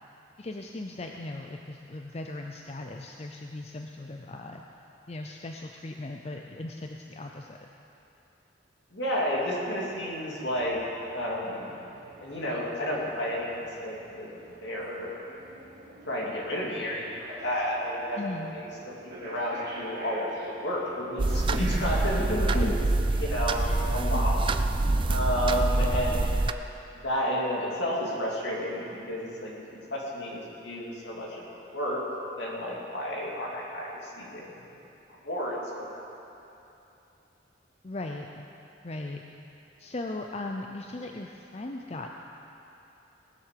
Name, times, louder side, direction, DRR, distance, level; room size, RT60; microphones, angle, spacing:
voice 1, 0.4-4.6 5.1-7.6 18.2-18.5 22.5-22.8 23.6-24.3 37.8-38.5 38.8-39.2 39.8-42.2, left 2 dB, 35° left, 2 dB, 0.5 m, -38 dB
voice 2, 8.9-10.8 11.1-11.7 12.2-14.3 14.6-15.1 16.1-18.2 18.4-22.7 23.1-23.6 23.9-24.4 25.1-26.4 27.0-29.5 29.9-31.4 31.7-32.0 32.3-34.7 35.2-35.6, equal, 70° left, -4 dB, 2.8 m, -31 dB
sound 1, 9.0-22.2, right 2 dB, 55° right, 2.5 m, -46 dB
sound 2, 21.2-26.5, right 2 dB, 25° right, 0.4 m, -26 dB
19.5 x 7.6 x 6.7 m, 2.9 s
head